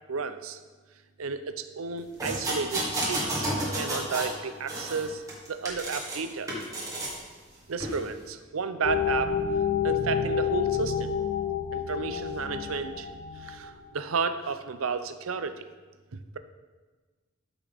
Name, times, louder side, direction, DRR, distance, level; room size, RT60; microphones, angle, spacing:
voice 1, 0.1-0.6 1.2-3.5 3.7-6.5 7.7-9.4 9.8-11.1 11.7-13.1 13.4-15.7 16.1-16.4, right 5 dB, 90° right, 10 dB, 0.6 m, -32 dB
sound 1, 2.2-4.4 4.7-6.2 6.5-7.2 7.8-8.0, right 1 dB, 15° right, 1.6 m, -31 dB
sound 2, 8.8-13.9, left 7 dB, 50° left, 0.5 m, -29 dB
12.0 x 6.1 x 3.5 m, 1.3 s
head